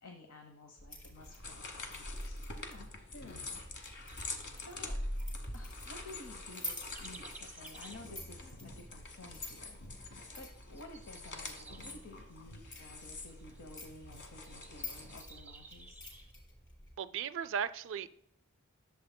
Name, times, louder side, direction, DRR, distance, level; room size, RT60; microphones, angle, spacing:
voice 1, 0.0-3.6 4.6-5.0 5.5-9.8 10.4-16.1, left 2 dB, 85° left, 1.0 m, -53 dB
sound 1, 0.8-16.9, left 1 dB, 20° left, 3.3 m, -47 dB
sound 2, 1.1-15.2, left 3 dB, 55° left, 1.2 m, -47 dB
sound 3, 3.9-16.3, right 3 dB, 10° right, 0.7 m, -58 dB
voice 2, 17.0-18.1, right 7 dB, 60° right, 0.4 m, -36 dB
11.5 x 7.1 x 2.2 m
head